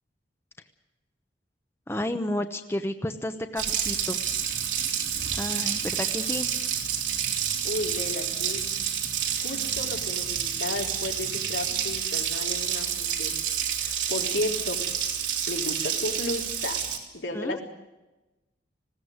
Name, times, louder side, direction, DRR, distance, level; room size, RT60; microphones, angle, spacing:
voice 1, 1.9-4.2 5.4-6.5 17.3-17.6, left 1 dB, 15° left, 8 dB, 0.9 m, -31 dB
Water tap faucet, 3.6-17.0, right 8 dB, 85° right, 3.5 m, -29 dB
sound 1, 4.0-12.0, right 1 dB, 60° right, 1.7 m, -47 dB
voice 2, 7.6-8.6 9.4-13.3 13.8-14.8 15.5-16.8 17.1-17.6, left 2 dB, 85° left, 1 dB, 4.1 m, -33 dB
20.0 x 17.0 x 9.5 m, 1.0 s
head